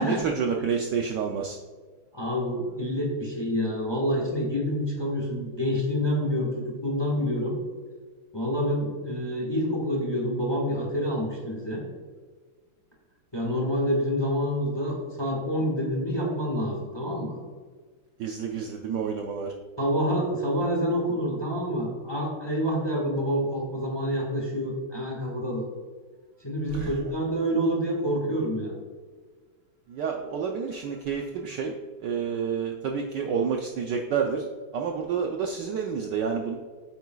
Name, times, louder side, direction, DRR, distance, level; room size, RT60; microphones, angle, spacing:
voice 1, 0.0-1.6 18.2-19.5 26.7-26.9 29.9-31.7 32.0-34.5 34.7-36.6, right 6 dB, 70° right, 2 dB, 1.0 m, -29 dB
voice 2, 2.1-7.5 8.3-11.8 13.3-17.3 19.8-25.6 26.4-28.7, equal, 15° left, -1 dB, 1.1 m, -27 dB
8.5 x 8.0 x 2.3 m, 1.5 s
omnidirectional pair, 2.4 m